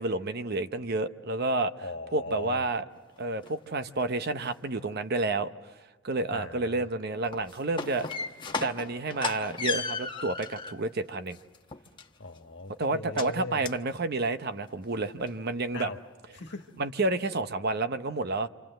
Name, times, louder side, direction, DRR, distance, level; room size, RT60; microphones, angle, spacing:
voice 1, 0.0-1.7 2.1-2.8 3.2-5.5 6.0-8.1 8.6-11.4 12.8-15.9 16.8-18.5, right 2 dB, 50° right, 10 dB, 0.8 m, -30 dB
voice 2, 1.8-2.7 6.3-6.8 12.2-13.6 15.7-16.0 16.3-16.7, left 3 dB, 55° left, 5 dB, 1.6 m, -39 dB
sound 1, 3.0-3.1 3.4-3.5 3.9-4.5 7.2-10.8 11.3-12.4 13.2-13.3 13.7-13.9 14.2-14.3 14.7-14.8 15.2-15.3, left 4 dB, 20° left, 1.0 m, -35 dB
28.0 x 26.5 x 7.7 m, 1.2 s
head